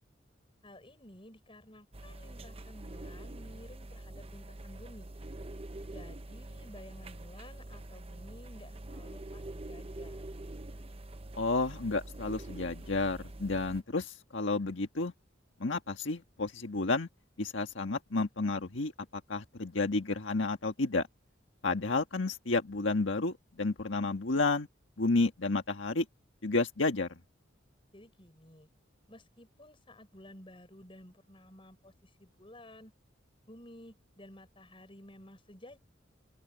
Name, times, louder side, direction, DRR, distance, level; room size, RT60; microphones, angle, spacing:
voice 1, 0.6-5.1 5.9-10.2 27.9-28.7 29.1-32.9 33.5-35.8, left 1 dB, 25° left, 6.4 m, -53 dB
sound 1, 1.9-13.8, right 1 dB, 30° right, 0.8 m, -45 dB
voice 2, 11.4-15.1 15.6-17.1 17.4-21.1 21.6-24.7 25.0-26.1 26.4-27.1, left 3 dB, 80° left, 1.6 m, -31 dB
open air
head